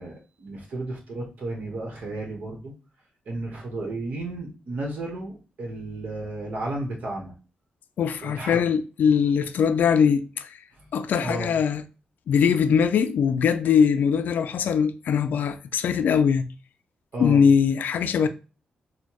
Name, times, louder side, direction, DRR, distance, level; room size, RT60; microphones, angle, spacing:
voice 1, 0.0-2.7 3.3-7.3 8.2-8.7 10.8-10.9 11.2-11.5 17.1-17.4, right 2 dB, 65° right, 1.1 m, -33 dB
voice 2, 8.0-10.6 10.9-11.8 12.3-16.5 17.2-18.3, left 7 dB, 75° left, 0.3 m, -21 dB
4.2 x 2.3 x 3.0 m
cardioid pair, 95°, 3 cm